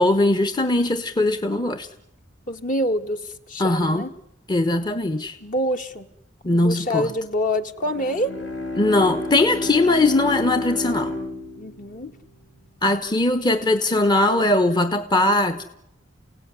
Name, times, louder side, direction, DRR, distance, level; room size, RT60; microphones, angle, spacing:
voice 1, 0.0-1.9 3.6-4.1 4.5-5.4 6.4-7.1 8.8-11.1 12.8-15.6, left 2 dB, 25° left, 10 dB, 1.0 m, -20 dB
voice 2, 2.5-4.1 5.4-6.0 6.5-8.3 11.6-12.1, equal, 45° left, 6 dB, 1.6 m, -26 dB
Bowed string instrument, 7.8-12.6, left 2 dB, 70° left, 2.8 m, -30 dB
29.5 x 17.0 x 9.7 m, 0.85 s
head